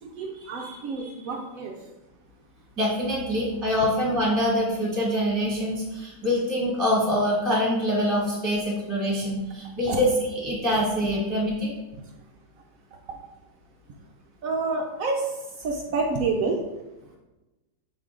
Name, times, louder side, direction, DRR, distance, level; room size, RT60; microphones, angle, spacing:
voice 1, 0.0-1.9 9.1-9.2 9.8-10.0 12.0-12.1 13.1-13.2 14.4-16.6, right 3 dB, 85° right, 1 dB, 0.7 m, -29 dB
voice 2, 2.8-11.8, equal, 10° right, -4 dB, 1.0 m, -25 dB
8.0 x 2.7 x 5.0 m, 1.1 s
omnidirectional pair, 2.2 m